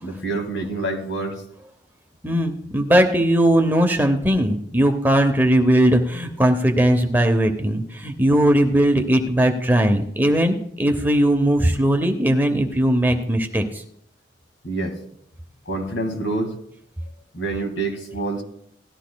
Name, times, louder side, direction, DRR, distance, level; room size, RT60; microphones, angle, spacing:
voice 1, 0.0-1.4 14.6-15.0 15.7-16.6 17.3-18.4, right 2 dB, 70° left, 3 dB, 2.0 m, -27 dB
voice 2, 2.2-13.8, right 1 dB, 10° right, 4 dB, 0.8 m, -19 dB
17.5 x 12.5 x 2.3 m, 0.69 s
head